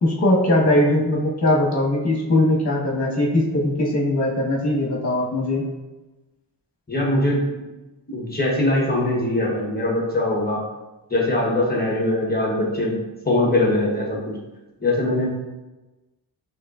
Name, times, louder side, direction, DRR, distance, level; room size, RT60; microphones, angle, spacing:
voice 1, 0.0-5.7, left 1 dB, 35° left, -3 dB, 1.4 m, -20 dB
voice 2, 6.9-7.6 8.1-10.6 11.1-13.0 13.2-14.4 14.8-15.3, left 1 dB, 20° left, -4 dB, 1.1 m, -22 dB
6.3 x 3.1 x 2.4 m, 1.1 s
wide cardioid pair, 100°, 45 cm